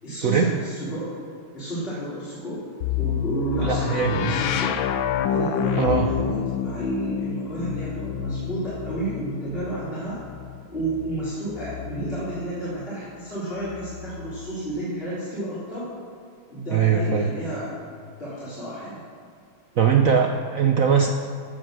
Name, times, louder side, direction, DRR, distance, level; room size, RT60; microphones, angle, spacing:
voice 1, 0.0-1.1 1.5-2.6 3.0-4.8 5.3-10.2 10.7-15.9 16.5-17.7 18.2-19.0, right 1 dB, 25° left, -11 dB, 3.6 m, -31 dB
sound 1, 2.8-12.6 13.6-14.7, left 9 dB, 75° left, 1.4 m, -29 dB
voice 2, 3.6-4.3 5.8-6.1 16.7-17.3 19.8-21.1, right 7 dB, 75° right, 4 dB, 0.7 m, -21 dB
15.0 x 8.1 x 6.3 m, 2.3 s
omnidirectional pair, 2.4 m